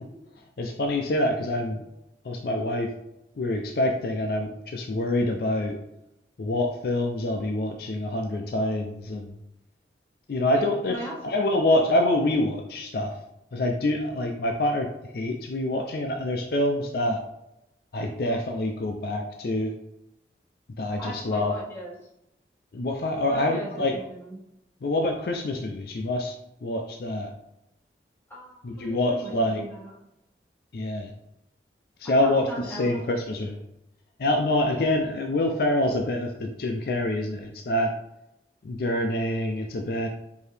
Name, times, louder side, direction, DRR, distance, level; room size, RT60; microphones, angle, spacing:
voice 1, 0.6-1.8 2.2-2.9 3.4-5.8 6.4-9.3 10.3-11.0 11.2-13.1 13.5-17.2 17.9-19.7 20.8-21.5 22.7-24.0 24.8-26.4 26.6-27.3 28.6-29.6 30.7-31.1 32.0-33.6 34.2-37.9 38.6-40.1, left 1 dB, 60° left, 3 dB, 0.4 m, -26 dB
voice 2, 10.5-11.1 21.0-21.9 23.3-24.4 28.3-29.9 32.0-32.9, right 1 dB, 10° left, -7 dB, 1.3 m, -38 dB
4.6 x 2.8 x 3.3 m, 0.83 s
head